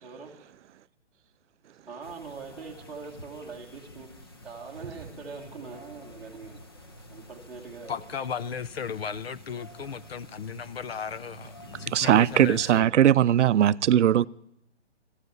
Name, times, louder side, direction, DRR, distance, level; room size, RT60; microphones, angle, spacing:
voice 1, 0.0-0.5 1.9-6.6 7.1-8.0, right 4 dB, ahead, 1.5 m, -43 dB
sound 1, 2.0-12.8, left 1 dB, 20° left, 0.6 m, -48 dB
voice 2, 7.9-12.9, left 7 dB, 60° left, 0.7 m, -35 dB
voice 3, 11.9-14.3, right 10 dB, 90° right, 0.5 m, -20 dB
15.0 x 7.8 x 9.5 m
hypercardioid pair, 175°, 35 cm